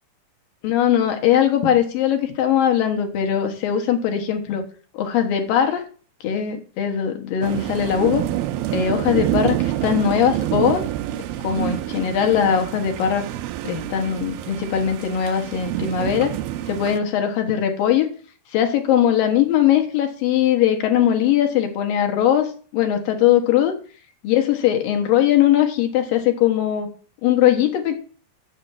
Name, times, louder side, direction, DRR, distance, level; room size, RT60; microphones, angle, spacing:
voice 1, 0.6-4.6 4.9-5.8 6.2-8.2 8.7-10.9 11.4-13.2 13.6-16.3 16.7-18.1 18.5-23.7 24.2-26.9 27.2-28.0, left 10 dB, 70° left, 4 dB, 2.9 m, -20 dB
sound 1, 7.4-17.0, right 14 dB, 85° right, 2.5 m, -27 dB
7.1 x 6.7 x 7.1 m, 0.41 s
omnidirectional pair, 4.3 m